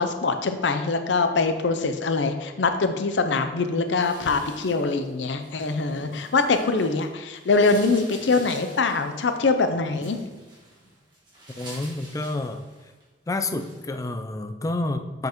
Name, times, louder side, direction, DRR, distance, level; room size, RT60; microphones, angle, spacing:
voice 1, 0.0-10.2, left 3 dB, 85° left, 8 dB, 0.6 m, -23 dB
sound 1, 3.9-7.0 7.3-13.0 13.4-13.8, right 1 dB, 25° right, 2.0 m, -46 dB
voice 2, 11.6-12.7 13.3-15.3, left 2 dB, 20° left, 8 dB, 0.3 m, -29 dB
7.1 x 5.2 x 3.0 m, 1.2 s
head